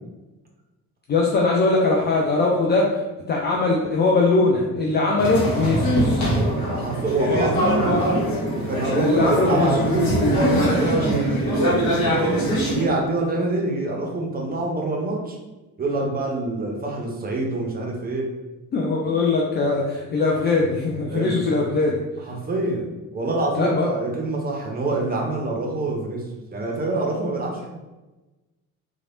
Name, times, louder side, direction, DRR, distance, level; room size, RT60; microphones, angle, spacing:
voice 1, 1.1-2.9 3.3-6.3 9.0-9.7 18.7-22.0 23.6-23.9, left 3 dB, 25° left, -2 dB, 0.3 m, -21 dB
sound 1, 5.2-12.8, equal, 50° left, 1.1 m, -22 dB
voice 2, 6.7-8.1 8.5-10.3 10.8-15.4 15.8-18.3 21.1-21.5 22.3-26.2 26.5-27.7, right 2 dB, 20° right, 0 dB, 0.7 m, -26 dB
3.2 x 2.3 x 2.4 m, 1.1 s
figure-of-eight pair, 50°, 44 cm